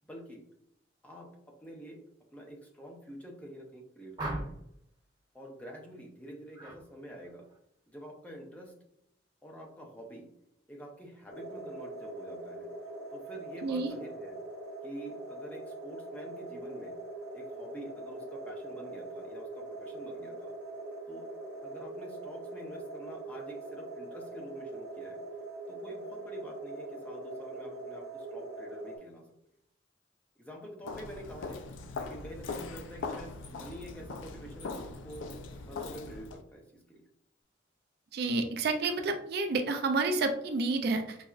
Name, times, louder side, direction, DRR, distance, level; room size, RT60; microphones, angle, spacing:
voice 1, 0.0-0.4 1.0-2.0 2.3-4.2 5.3-7.5 7.9-8.7 9.4-10.3 10.7-12.7 13.1-14.4 14.8-16.9 17.3-20.5 21.1-21.3 21.6-25.2 25.7-29.2 30.4-31.6 31.9-35.4 35.7-37.0, equal, 10° left, 0 dB, 0.5 m, -47 dB
sound 1, 4.2-4.8 6.5-6.8 7.2-7.6, right 1 dB, 20° right, 1.0 m, -38 dB
sound 2, 11.3-29.0, right 2 dB, 85° right, 0.7 m, -42 dB
voice 2, 13.6-13.9 38.1-41.2, right 3 dB, 55° right, 6 dB, 0.3 m, -29 dB
Walk footsteps, 30.8-36.4, left 3 dB, 75° left, 0.4 m, -41 dB
5.5 x 2.0 x 2.4 m, 0.74 s
head